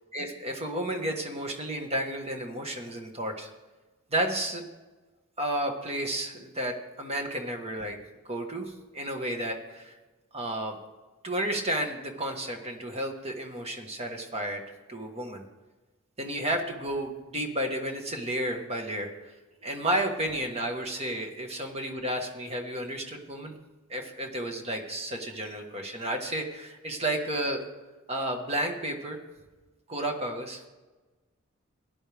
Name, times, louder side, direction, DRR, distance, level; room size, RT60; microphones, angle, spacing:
voice 1, 0.1-3.5 4.1-4.6 5.4-8.0 8.2-9.9 10.3-10.7 11.2-14.6 14.9-15.5 16.2-19.1 19.6-23.5 23.9-27.6 28.1-29.2 29.9-30.6, right 1 dB, 30° right, 3 dB, 1.4 m, -32 dB
17.0 x 10.5 x 3.5 m, 1.2 s
head